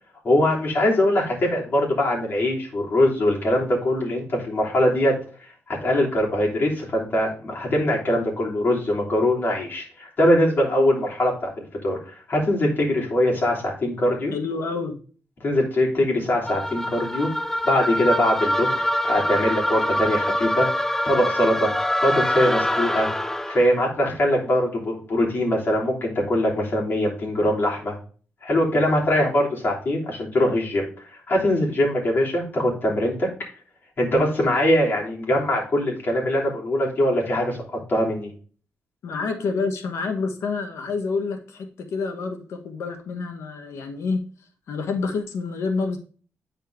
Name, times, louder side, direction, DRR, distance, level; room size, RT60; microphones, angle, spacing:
voice 1, 0.2-5.1 5.7-14.3 15.4-17.3 17.6-20.7 21.0-21.7 22.0-23.1 23.5-27.9 28.4-30.9 31.3-33.3 34.0-37.6 37.9-38.3, left 1 dB, 45° left, -2 dB, 3.3 m, -22 dB
voice 2, 14.3-15.0 39.0-44.2 44.7-46.0, left 4 dB, 85° left, 6 dB, 1.3 m, -28 dB
sound 1, 16.5-23.7, left 1 dB, 10° left, 0.4 m, -24 dB
9.1 x 4.3 x 3.4 m, 0.40 s
cardioid pair, 115°, 5 cm